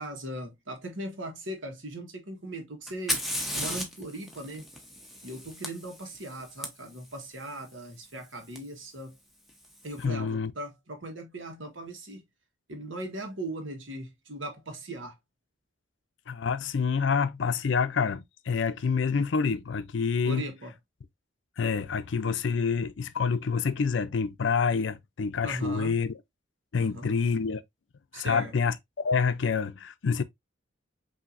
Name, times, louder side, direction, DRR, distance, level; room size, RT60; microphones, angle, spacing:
voice 1, 0.0-3.3 3.5-4.7 5.2-9.2 9.8-12.2 12.7-15.2 20.2-20.7 25.4-26.0 26.8-27.2 28.1-28.5, right 1 dB, 75° right, 1.3 m, -39 dB
Fire, 2.9-6.7 8.6-8.7 9.5-9.9, equal, ahead, 0.9 m, -35 dB
voice 2, 10.0-10.5 16.3-20.4 21.6-26.1 26.7-27.6 28.1-30.2, left 5 dB, 70° left, 0.5 m, -27 dB
5.7 x 2.8 x 2.5 m
head